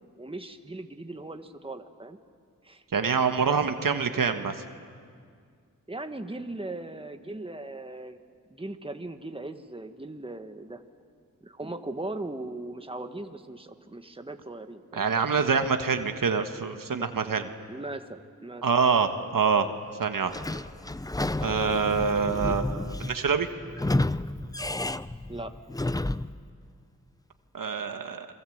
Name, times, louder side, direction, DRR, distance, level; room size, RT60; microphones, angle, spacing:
voice 1, 0.2-2.2 2.6-2.8 5.9-8.2 8.5-10.8 11.4-15.0 17.7-18.7 25.3-25.5, right 2 dB, 15° right, 7 dB, 1.6 m, -38 dB
voice 2, 2.9-4.5 14.9-17.5 18.6-19.7 20.0-20.4 21.4-23.5 27.5-28.3, right 5 dB, 75° right, 7 dB, 1.5 m, -25 dB
Sliding door / Squeak, 20.3-26.4, left 2 dB, 10° left, 0.6 m, -31 dB
28.0 x 22.5 x 8.0 m, 2.1 s
cardioid pair, 55°, 33 cm